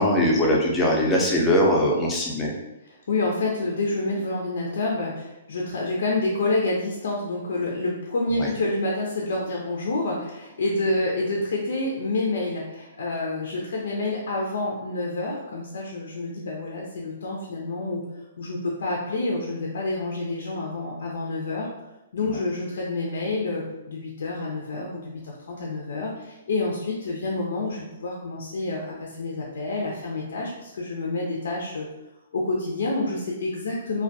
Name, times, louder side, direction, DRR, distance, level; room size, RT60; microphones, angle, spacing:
voice 1, 0.0-2.5 8.4-8.5 22.2-22.3, left 1 dB, 15° left, -3 dB, 0.5 m, -21 dB
voice 2, 2.9-18.0 18.4-21.7 22.1-31.9 32.3-34.0, left 2 dB, 70° left, -2 dB, 0.4 m, -28 dB
2.2 x 2.2 x 2.6 m, 0.96 s
hypercardioid pair, 135°, 0 cm